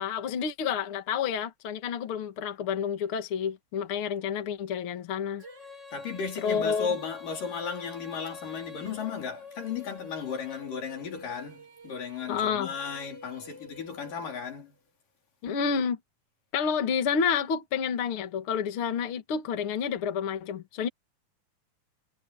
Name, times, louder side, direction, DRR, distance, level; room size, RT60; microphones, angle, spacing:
voice 1, 0.0-5.4 6.4-6.9 12.3-12.7 15.4-16.0 16.5-20.9, left 7 dB, 45° left, 2.4 m, -29 dB
Female singing, 5.4-14.5, left 3 dB, 25° right, 2.9 m, -47 dB
voice 2, 5.9-14.8, left 6 dB, 80° left, 5.7 m, -35 dB
omnidirectional pair, 3.8 m